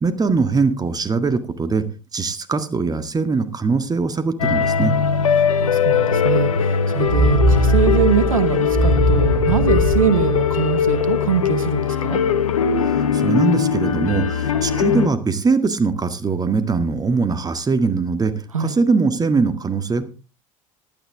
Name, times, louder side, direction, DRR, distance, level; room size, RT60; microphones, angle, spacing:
voice 1, 0.0-1.8 2.1-4.9 12.8-18.3 18.6-20.0, right 4 dB, 20° right, 10 dB, 1.8 m, -21 dB
sound 1, 4.4-15.1, left 7 dB, 80° left, 0.9 m, -20 dB
voice 2, 5.3-12.2 18.5-18.7, right 6 dB, 85° right, 14 dB, 0.9 m, -23 dB
sound 2, 7.1-11.1, equal, 65° right, 3.5 m, -19 dB
16.0 x 11.5 x 3.5 m, 0.32 s
figure-of-eight pair, 70°, 17 cm